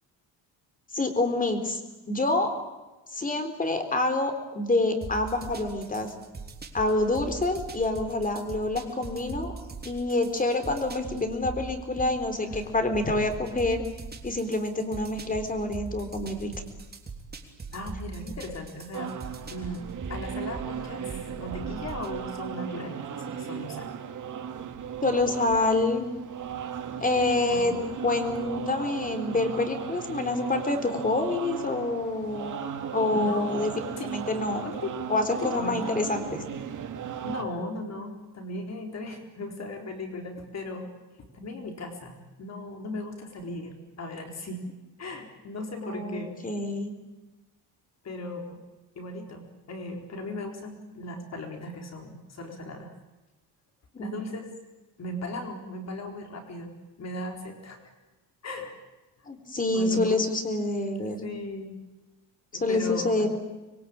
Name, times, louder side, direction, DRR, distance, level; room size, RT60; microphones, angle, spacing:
voice 1, 0.9-1.8 2.1-2.5 3.1-6.1 6.7-9.5 9.8-13.8 14.2-16.5 25.0-26.1 27.0-32.5 32.9-33.7 34.1-34.6 35.1-36.4 45.8-46.9 53.9-54.3 59.3-61.3 62.5-63.4, left 2 dB, 20° left, 7 dB, 3.9 m, -27 dB
sound 1, 5.0-22.2, right 4 dB, 25° right, 3.4 m, -41 dB
voice 2, 17.7-19.2 19.5-23.9 24.4-24.5 27.5-27.8 33.1-33.7 34.0-34.1 34.6-35.0 35.3-35.9 37.2-40.9 41.3-44.6 45.0-46.4 48.0-48.6 49.0-52.9 54.0-54.5 55.0-56.7 57.0-57.9 58.4-58.8 59.7-60.4 61.2-61.8 62.5-63.3, left 2 dB, 40° left, 3 dB, 4.3 m, -37 dB
sound 2, 18.9-37.4, right 8 dB, 45° right, 2.6 m, -36 dB
26.0 x 22.5 x 8.8 m, 1.1 s
cardioid pair, 140°, 41 cm